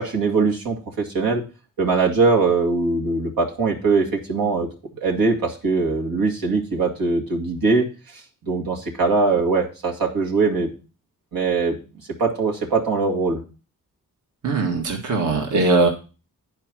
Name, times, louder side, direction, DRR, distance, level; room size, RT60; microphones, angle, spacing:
voice 1, 0.0-1.4 1.8-4.7 5.0-7.9 8.5-10.7 11.3-11.8 12.2-13.4, right 4 dB, 90° right, -1 dB, 2.3 m, -21 dB
voice 2, 14.4-15.9, right 3 dB, 60° right, 1 dB, 1.6 m, -20 dB
9.9 x 4.7 x 6.1 m, 0.32 s
wide cardioid pair, 95°, 34 cm